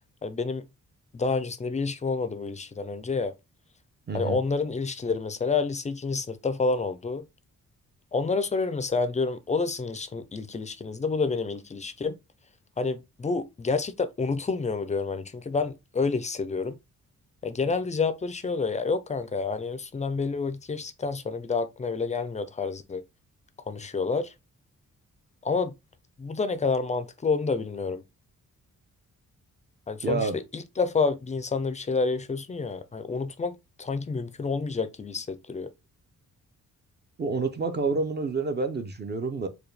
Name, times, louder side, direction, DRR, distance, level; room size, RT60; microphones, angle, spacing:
voice 1, 0.2-0.6 1.1-3.3 4.1-7.3 8.1-12.2 12.8-16.8 17.4-23.0 23.7-24.3 25.4-25.8 26.2-28.0 29.9-35.7, left 4 dB, 20° left, 0.4 m, -29 dB
voice 2, 4.1-4.4 30.0-30.4 37.2-39.5, right 3 dB, 30° right, 0.6 m, -28 dB
4.7 x 2.3 x 3.2 m
wide cardioid pair, 135°, 32 cm